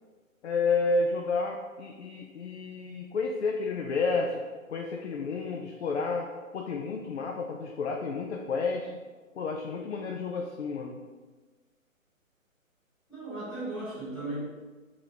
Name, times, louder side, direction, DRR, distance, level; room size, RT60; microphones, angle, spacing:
voice 1, 0.4-4.4 4.7-6.3 6.5-8.9 9.4-11.0, left 4 dB, 55° left, 1 dB, 0.5 m, -30 dB
voice 2, 13.1-14.4, right 2 dB, ahead, -18 dB, 0.6 m, -36 dB
4.6 x 2.9 x 2.8 m, 1.3 s
figure-of-eight pair, 135°, 42 cm